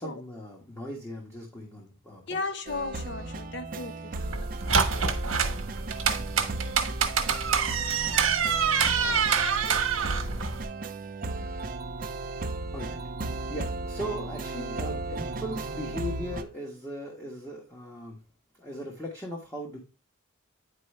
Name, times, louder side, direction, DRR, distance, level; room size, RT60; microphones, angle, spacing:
voice 1, 0.0-2.4 12.7-13.0 13.5-18.2 18.6-19.8, equal, 10° left, 1.4 m, -38 dB
voice 2, 2.3-4.2, left 3 dB, 55° left, 0.8 m, -35 dB
sound 1, 2.7-16.4, right 3 dB, 40° right, 0.6 m, -36 dB
sound 2, 4.1-10.6, right 6 dB, 80° right, 1.2 m, -26 dB
9.6 x 4.6 x 3.2 m
head